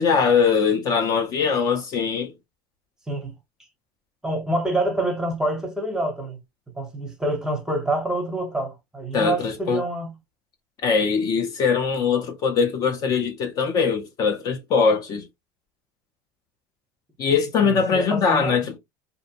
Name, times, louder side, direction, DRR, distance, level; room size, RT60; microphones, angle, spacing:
voice 1, 0.0-2.3 9.1-9.8 10.8-15.3 17.2-18.8, left 5 dB, 40° left, 0.5 m, -21 dB
voice 2, 4.2-6.4 6.8-10.1 17.6-18.6, right 1 dB, 5° right, 0.7 m, -26 dB
2.5 x 2.1 x 2.7 m
supercardioid pair, 135°, 10 cm